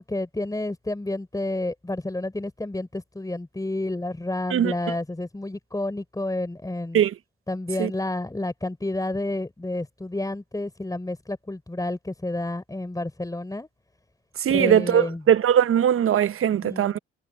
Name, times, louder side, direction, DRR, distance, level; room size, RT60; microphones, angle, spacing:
voice 1, 0.0-7.0 7.5-13.7 14.5-15.2 16.5-17.0, left 2 dB, 10° left, 4.4 m, -30 dB
voice 2, 14.4-17.0, right 9 dB, 45° right, 1.1 m, -20 dB
hypercardioid pair, 60°, 30 cm